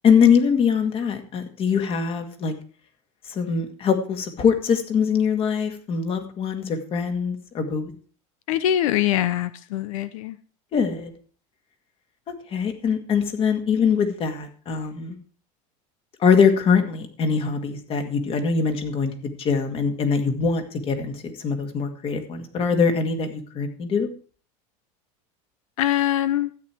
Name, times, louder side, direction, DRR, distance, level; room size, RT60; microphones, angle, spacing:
voice 1, 0.0-2.5 3.3-7.9 10.7-11.1 12.5-15.2 16.2-24.1, left 6 dB, 35° left, 7 dB, 2.1 m, -22 dB
voice 2, 8.5-10.4 25.8-26.5, left 12 dB, 85° left, 14 dB, 0.8 m, -23 dB
13.0 x 9.2 x 4.7 m, 0.42 s
supercardioid pair, 135°, 17 cm